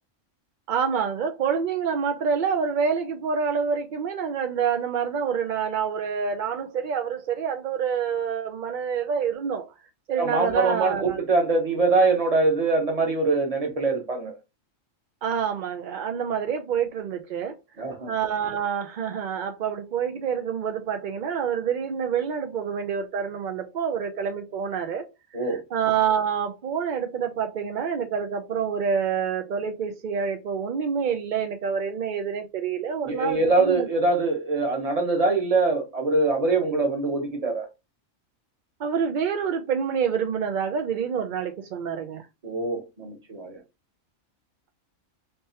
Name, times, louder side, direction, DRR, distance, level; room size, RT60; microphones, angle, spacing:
voice 1, 0.7-9.7 10.1-11.2 15.2-17.6 18.1-25.1 25.4-33.9 38.8-42.3, right 7 dB, 75° right, 0.4 m, -27 dB
voice 2, 10.2-14.3 17.8-18.1 25.3-25.6 33.0-37.7 42.4-43.6, right 3 dB, 30° right, 0.9 m, -23 dB
3.4 x 3.2 x 2.8 m
omnidirectional pair, 1.4 m